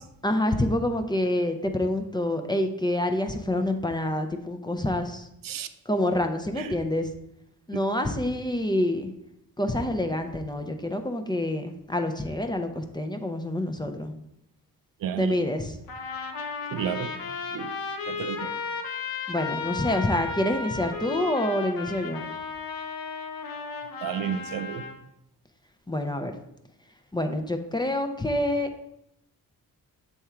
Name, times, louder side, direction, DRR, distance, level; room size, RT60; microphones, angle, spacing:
voice 1, 0.2-5.3 5.9-7.1 7.7-9.1 9.6-14.1 15.2-15.7 19.3-22.3 25.9-26.3 27.1-28.7, left 1 dB, 10° left, 6 dB, 0.5 m, -27 dB
voice 2, 15.0-15.5 16.7-17.1 17.5-17.8 18.1-18.6 24.0-24.8, right 8 dB, 70° right, 11 dB, 0.5 m, -32 dB
Trumpet, 15.9-24.9, left 5 dB, 70° left, 0.9 m, -34 dB
6.9 x 3.5 x 4.3 m, 0.78 s
cardioid pair, 100°, 36 cm